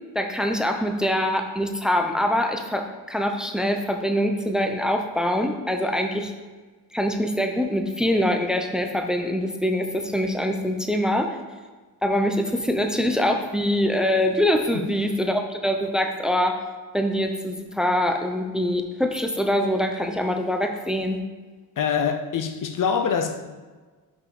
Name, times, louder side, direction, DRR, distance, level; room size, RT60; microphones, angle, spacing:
voice 1, 0.1-6.3 6.9-11.3 12.0-16.5 16.9-21.2, equal, ahead, 0.8 m, -24 dB
voice 2, 21.8-23.7, left 6 dB, 50° left, 0.7 m, -25 dB
6.0 x 5.7 x 6.0 m
cardioid pair, 90°, 42 cm